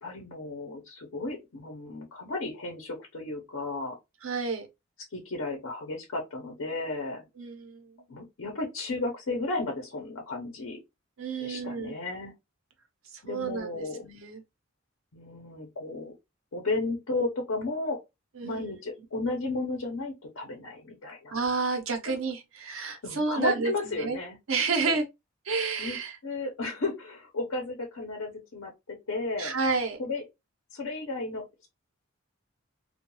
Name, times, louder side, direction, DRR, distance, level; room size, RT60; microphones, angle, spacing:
voice 1, 0.0-4.0 5.1-7.2 8.1-10.8 11.4-12.3 13.2-14.0 15.1-16.1 16.5-18.0 18.4-21.3 22.8-24.4 24.8-25.0 25.8-26.0 26.2-29.6 30.0-30.2 30.7-31.7, left 3 dB, 85° left, 0.7 m, -34 dB
voice 2, 4.2-4.7 7.4-7.9 11.2-11.9 13.1-14.4 18.3-18.7 21.3-24.2 24.5-25.1 25.4-26.2 29.4-30.0, right 4 dB, 90° right, 0.8 m, -30 dB
2.3 x 2.3 x 2.9 m
head